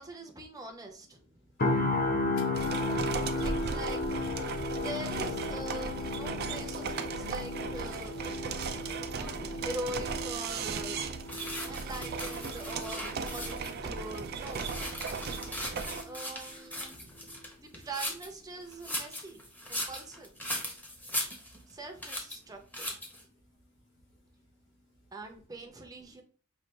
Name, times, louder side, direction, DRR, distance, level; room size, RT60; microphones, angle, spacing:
voice 1, 0.0-1.2 3.4-8.2 9.1-11.0 11.4-14.7 16.0-17.3 17.6-19.4 19.7-20.3 21.7-22.9 25.1-26.2, right 1 dB, 20° right, 0.7 m, -43 dB
voice 2, 1.2-3.4 16.6-17.9 18.5-19.9 20.5-21.8 22.8-25.1 26.0-26.2, left 1 dB, 60° left, 1.9 m, -63 dB
sound 1, 1.6-15.6 15.9-16.2, left 2 dB, 45° left, 0.7 m, -35 dB
sound 2, 2.5-16.0, right 5 dB, 50° right, 0.4 m, -37 dB
sound 3, 11.3-13.8 14.2-18.3 18.7-21.7 22.0-22.4 22.7-23.2, left 1 dB, 10° left, 0.9 m, -38 dB
5.4 x 2.5 x 3.2 m
head